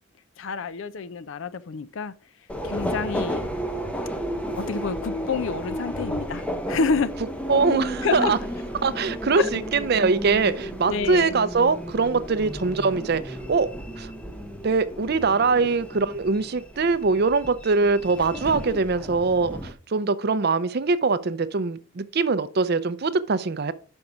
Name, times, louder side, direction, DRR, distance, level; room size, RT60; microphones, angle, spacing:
voice 1, 0.4-2.1 2.6-3.5 4.6-7.1 8.0-8.3 9.4-9.5 10.9-11.3, left 4 dB, 60° left, 0.4 m, -28 dB
Subway metro underground, 2.5-19.7, equal, 5° left, 0.6 m, -33 dB
voice 2, 7.5-8.4 8.8-13.7 14.0-14.1 14.6-23.7, right 4 dB, 50° right, 0.5 m, -23 dB
5.8 x 5.4 x 4.9 m
head